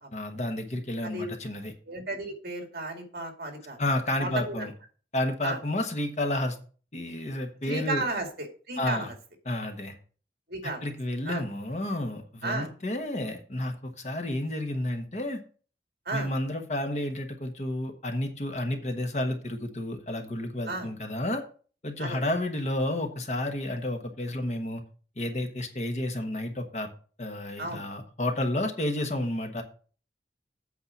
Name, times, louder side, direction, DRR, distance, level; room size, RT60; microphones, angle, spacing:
voice 1, 0.1-1.7 3.8-4.7 5.1-6.6 6.9-8.0 8.8-9.1 9.4-10.0 10.8-15.4 16.1-21.4 21.8-24.8 25.2-26.9 27.2-29.6, left 1 dB, 40° left, 5 dB, 1.2 m, -31 dB
voice 2, 1.9-3.8 4.2-4.7 5.4-5.6 7.7-9.1 10.5-10.8 11.3-11.4 12.4-12.7 16.1-16.3 20.7-20.9 22.0-22.2 27.6-27.8, right 2 dB, 55° right, 3 dB, 2.3 m, -33 dB
8.4 x 4.8 x 7.2 m, 0.40 s
head